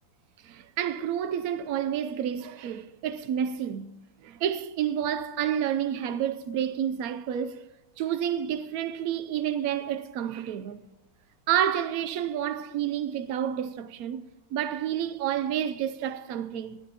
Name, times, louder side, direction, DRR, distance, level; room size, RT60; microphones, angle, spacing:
voice 1, 0.4-3.9 4.2-7.7 8.0-10.8 11.5-14.2 14.5-16.8, right 10 dB, 85° right, 0.7 m, -29 dB
19.5 x 12.5 x 2.9 m
omnidirectional pair, 2.2 m